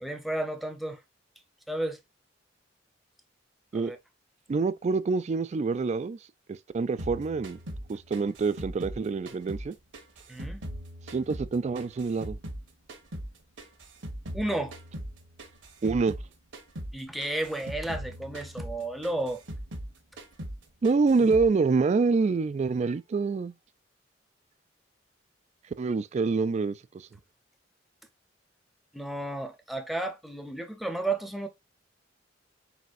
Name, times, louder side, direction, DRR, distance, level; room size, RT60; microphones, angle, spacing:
voice 1, 0.0-1.0 1.7-2.0 3.7-4.0 10.3-10.6 14.3-14.7 16.9-19.4 28.9-31.5, right 2 dB, ahead, 0.6 m, -32 dB
voice 2, 4.5-6.2 6.5-7.6 7.9-9.7 11.1-12.4 15.8-16.2 20.8-23.5 25.8-27.1, right 4 dB, 35° right, 0.3 m, -26 dB
sound 1, 7.0-9.7 9.9-12.6 12.9-16.3 16.5-16.9 17.2-19.9 20.2-20.6 20.8-21.5, equal, 75° right, 1.1 m, -40 dB
4.2 x 4.1 x 2.4 m
head